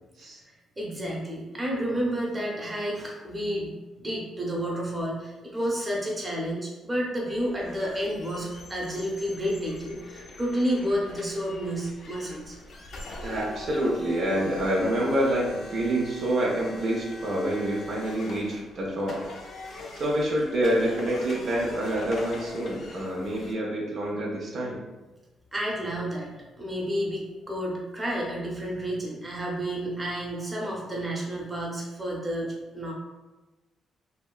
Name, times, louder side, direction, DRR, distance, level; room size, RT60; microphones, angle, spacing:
voice 1, 0.8-3.7 4.0-12.6 24.6-24.7 25.5-26.3 26.6-32.9, equal, 20° right, -3 dB, 0.7 m, -30 dB
sound 1, 7.3-23.5, left 2 dB, 55° left, 0.4 m, -43 dB
voice 2, 13.2-19.2 19.9-24.8, right 1 dB, 60° right, -3 dB, 0.5 m, -27 dB
2.7 x 2.2 x 2.3 m, 1.2 s
cardioid pair, 90°, 0 cm